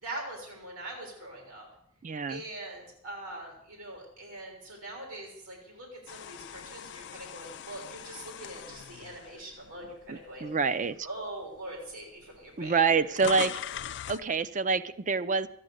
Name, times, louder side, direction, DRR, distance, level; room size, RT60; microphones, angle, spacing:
voice 1, 0.0-1.6 2.3-10.5 11.0-13.0, right 1 dB, 85° right, 0 dB, 3.7 m, -42 dB
voice 2, 2.0-2.4 10.1-11.0 12.6-13.5 14.1-15.5, right 5 dB, 35° right, 15 dB, 0.5 m, -27 dB
sound 1, 6.1-10.3 10.8-11.0 11.9-12.0 12.2-14.3, left 9 dB, 55° left, 0.4 m, -41 dB
14.0 x 10.0 x 6.4 m, 0.75 s
head